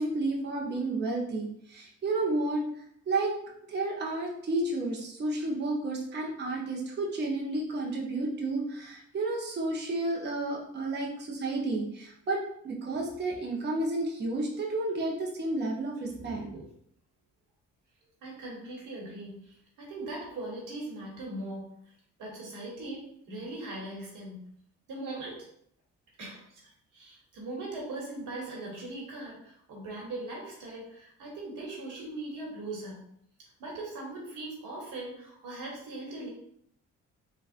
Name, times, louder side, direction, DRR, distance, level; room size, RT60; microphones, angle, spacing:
voice 1, 0.0-2.6 3.1-3.3 3.7-16.6, right 2 dB, 35° right, -1 dB, 0.7 m, -31 dB
voice 2, 18.2-21.7 22.2-24.5 24.9-25.4 26.2-33.0 33.6-36.3, right 2 dB, 85° right, -3 dB, 1.2 m, -40 dB
3.5 x 2.3 x 2.5 m, 0.68 s
cardioid pair, 90°, 30 cm